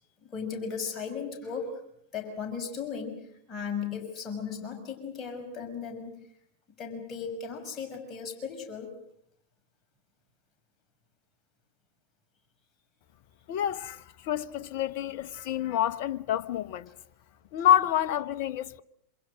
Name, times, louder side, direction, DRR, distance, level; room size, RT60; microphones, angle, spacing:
voice 1, 0.3-1.7 2.1-3.2 3.5-6.1 6.8-8.9 17.6-17.7, left 6 dB, 25° left, 6.0 m, -36 dB
voice 2, 13.5-16.9 17.5-18.8, left 11 dB, 45° left, 0.9 m, -28 dB
27.0 x 26.0 x 6.5 m
figure-of-eight pair, 90°, 0 cm